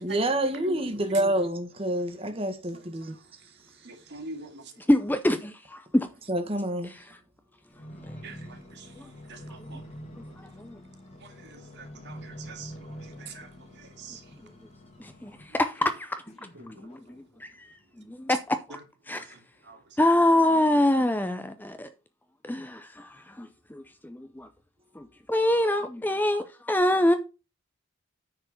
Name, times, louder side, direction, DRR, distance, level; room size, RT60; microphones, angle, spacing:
voice 1, 0.0-3.2 6.3-6.9, right 1 dB, 25° right, 1.6 m, -27 dB
voice 2, 3.8-4.7 8.2-8.9 9.3-9.8 11.2-12.7 13.0-13.5 13.8-14.2 15.8-15.9 16.6-16.7 18.7-18.8 19.1-19.8, right 3 dB, 50° right, 2.2 m, -44 dB
voice 3, 4.9-6.1 10.6-10.8 15.0-16.2 16.6-17.0 17.4-17.7 18.1-18.6 19.1-19.3 20.0-21.9 22.5-24.5 25.0-27.2, left 1 dB, 10° left, 0.5 m, -25 dB
sound 1, 7.7-15.7 16.3-17.5 18.2-18.3, equal, 30° left, 2.3 m, -46 dB
9.6 x 4.6 x 6.5 m
head